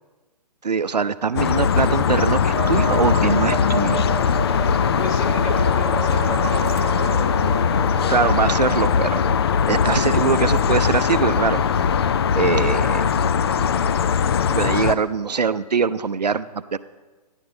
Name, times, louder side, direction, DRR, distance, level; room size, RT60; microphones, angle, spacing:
voice 1, 0.6-4.0 8.1-9.2 9.7-11.6 12.4-13.1 14.5-16.5 16.7-16.8, right 5 dB, 80° right, 13 dB, 0.6 m, -22 dB
sound 1, 1.4-15.0, left 7 dB, 40° left, 0.4 m, -20 dB
sound 2, 2.5-8.9, right 7 dB, 50° right, 1.1 m, -32 dB
voice 2, 4.5-8.0 14.3-14.8, left 1 dB, 20° left, -1 dB, 1.4 m, -34 dB
15.5 x 10.5 x 3.9 m, 1.3 s
figure-of-eight pair, 130°, 21 cm